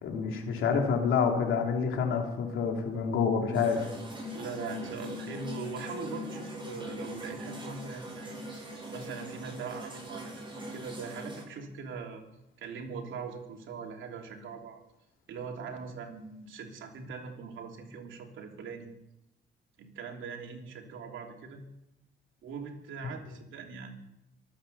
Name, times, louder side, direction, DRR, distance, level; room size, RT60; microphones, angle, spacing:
voice 1, 0.0-3.8 23.0-23.1, left 6 dB, 80° left, 2 dB, 3.2 m, -28 dB
sound 1, 3.5-11.4, equal, 25° right, 7.9 m, -41 dB
voice 2, 4.3-8.4 8.9-12.2 12.6-14.8 15.3-18.9 19.8-21.6 22.4-23.9, right 5 dB, 75° right, 2 dB, 3.1 m, -41 dB
23.5 x 8.9 x 6.9 m, 0.88 s
cardioid pair, 90°, 20 cm